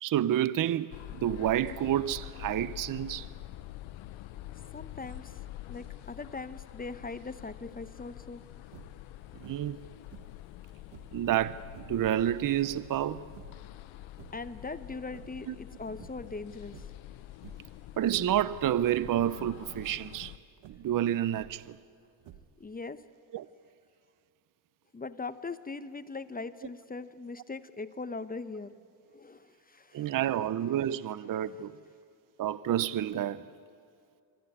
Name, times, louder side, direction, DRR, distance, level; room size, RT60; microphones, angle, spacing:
voice 1, 0.0-3.3 9.4-9.8 11.1-11.6 11.9-13.2 15.5-15.6 18.0-20.3 20.7-21.8 23.3-23.5 29.9-31.7 32.4-33.4, right 11 dB, 45° right, 0.6 m, -29 dB
sound 1, 0.9-20.4, left 14 dB, 80° left, 0.8 m, -46 dB
voice 2, 4.7-5.3 5.7-8.4 14.3-16.7 22.6-23.0 24.9-28.7 29.1-30.1, left 3 dB, 20° left, 0.8 m, -40 dB
sound 2, 8.7-9.1 9.4-9.8 10.1-11.2 11.7-12.0 12.6-13.7 14.0-14.6 14.9-15.7 16.0-16.4 16.7-17.1 17.4-17.8 18.1-18.5 18.9-19.3 19.7-20.0 20.6-21.7 22.2-22.8, right 10 dB, 70° right, 1.4 m, -53 dB
23.5 x 13.5 x 9.6 m
cardioid pair, 80°, 48 cm